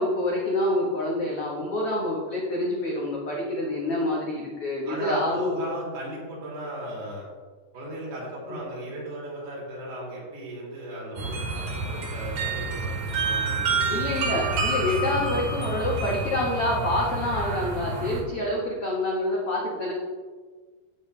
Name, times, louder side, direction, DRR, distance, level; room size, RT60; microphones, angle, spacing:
voice 1, 0.0-5.7 8.5-8.6 13.9-19.9, left 1 dB, 80° left, -3 dB, 1.3 m, -27 dB
voice 2, 4.9-7.3 7.7-14.3, right 1 dB, 75° right, -5 dB, 5.4 m, -36 dB
sound 1, 11.2-18.2, right 3 dB, 55° right, 3.0 m, -28 dB
12.0 x 8.5 x 3.3 m, 1.4 s
omnidirectional pair, 4.8 m